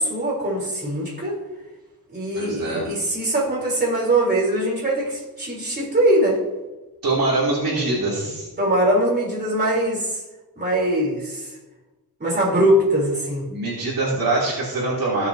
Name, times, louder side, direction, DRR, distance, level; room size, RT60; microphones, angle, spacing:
voice 1, 0.0-1.4 2.1-6.4 8.6-10.2 10.6-11.5 12.2-13.5, right 1 dB, 25° right, -4 dB, 3.7 m, -21 dB
voice 2, 2.3-2.9 7.0-8.5 13.5-15.3, right 2 dB, 65° right, -8 dB, 3.1 m, -23 dB
16.5 x 7.3 x 2.8 m, 1.1 s
wide cardioid pair, 125°, 37 cm